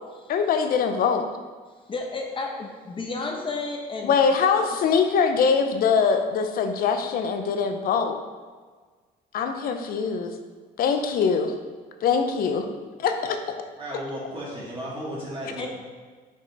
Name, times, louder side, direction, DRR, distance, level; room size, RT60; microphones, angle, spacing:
voice 1, 0.3-1.3 4.0-8.2 9.3-10.3 10.8-11.5 12.0-12.7 13.0-13.4, left 6 dB, 60° left, 6 dB, 0.7 m, -23 dB
voice 2, 1.9-4.2 4.4-4.5 15.6-15.7, left 3 dB, 30° left, 1 dB, 0.8 m, -32 dB
voice 3, 13.8-15.7, equal, 30° right, -7 dB, 1.8 m, -34 dB
5.4 x 5.2 x 4.0 m, 1.5 s
cardioid pair, 110°, 17 cm